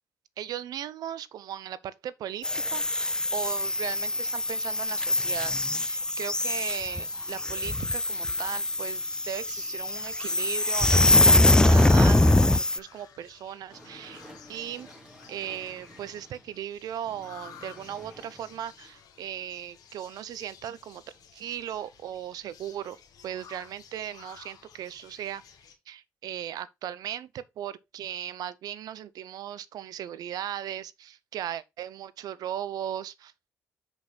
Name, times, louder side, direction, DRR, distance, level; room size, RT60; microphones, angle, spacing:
voice 1, 0.4-14.2 14.5-14.9 15.3-21.0 21.3-23.0 23.2-25.4 25.9-33.3, right 11 dB, 70° right, 0.7 m, -37 dB
sound 1, 2.4-12.8, left 2 dB, 10° left, 0.3 m, -23 dB
sound 2, 6.6-25.7, left 8 dB, 65° left, 1.7 m, -53 dB
sound 3, 13.7-16.6 17.0-19.0, equal, 10° right, 3.5 m, -51 dB
6.0 x 5.4 x 4.0 m
hypercardioid pair, 55°, 7 cm